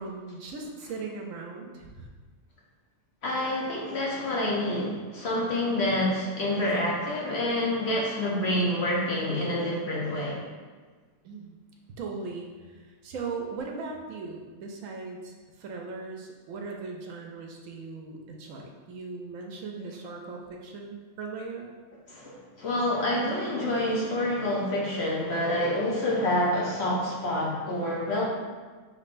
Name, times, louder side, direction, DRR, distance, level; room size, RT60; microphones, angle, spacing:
voice 1, 0.0-2.1 11.2-11.6 11.9-12.5 13.0-15.3 15.6-21.7, right 4 dB, 70° right, 1 dB, 0.9 m, -38 dB
voice 2, 3.2-10.4 22.1-28.2, left 1 dB, 55° left, -4 dB, 1.0 m, -27 dB
5.3 x 3.4 x 2.5 m, 1.4 s
omnidirectional pair, 1.5 m